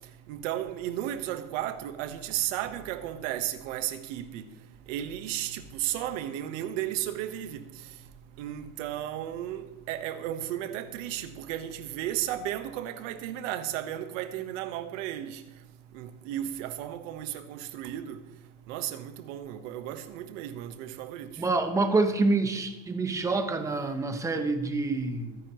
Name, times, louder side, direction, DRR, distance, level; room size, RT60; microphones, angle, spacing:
voice 1, 0.3-4.4 4.9-7.6 8.4-15.4 15.9-18.2 18.7-21.3, right 12 dB, 60° right, 1.3 m, -34 dB
voice 2, 21.4-25.4, right 3 dB, 5° right, 0.8 m, -27 dB
24.5 x 10.5 x 3.1 m
supercardioid pair, 165°, 42 cm